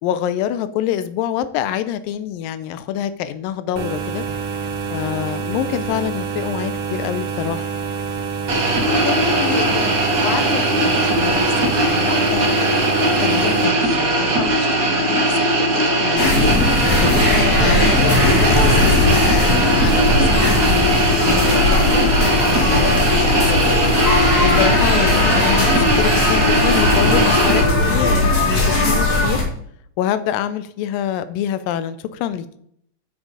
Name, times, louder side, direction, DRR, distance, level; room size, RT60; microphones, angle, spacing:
voice 1, 0.0-4.3 4.9-7.7 21.5-21.9 24.4-29.4 30.0-32.5, left 10 dB, 85° left, 13 dB, 2.3 m, -25 dB
sound 1, 3.8-13.7, right 6 dB, 70° right, 2.6 m, -27 dB
sound 2, 8.5-27.6, right 1 dB, 55° right, 1.0 m, -19 dB
voice 2, 8.9-21.1 21.4-23.8, left 7 dB, 65° left, 7 dB, 1.6 m, -29 dB
sound 3, 16.2-29.4, left 2 dB, 45° left, 1.4 m, -18 dB
8.3 x 6.4 x 4.9 m, 0.68 s
omnidirectional pair, 3.9 m